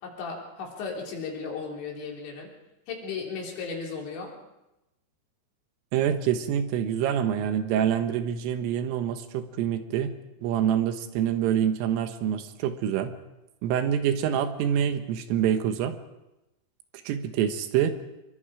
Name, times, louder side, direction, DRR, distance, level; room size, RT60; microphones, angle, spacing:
voice 1, 0.0-2.5 2.9-4.3, left 5 dB, 65° left, -1 dB, 5.7 m, -35 dB
voice 2, 5.9-10.1 10.4-13.1 13.6-16.0 17.1-17.9, right 9 dB, 80° right, 8 dB, 3.8 m, -26 dB
26.0 x 23.0 x 4.9 m, 0.94 s
omnidirectional pair, 5.8 m